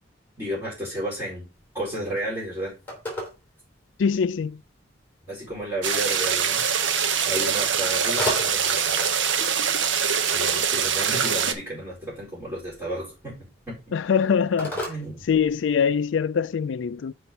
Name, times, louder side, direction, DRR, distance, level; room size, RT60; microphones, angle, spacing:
voice 1, 0.4-1.5 1.7-2.7 5.3-6.7 7.2-9.1 10.3-13.4 13.7-13.8 14.9-15.2, right 1 dB, 15° right, 4.6 m, -32 dB
Telephone, 1.5-16.0, equal, 10° left, 3.0 m, -39 dB
voice 2, 4.0-4.6 13.9-14.8 15.3-17.1, left 6 dB, 75° left, 0.4 m, -23 dB
sound 1, 5.8-11.5, right 7 dB, 70° right, 0.9 m, -23 dB
6.0 x 5.0 x 5.4 m
head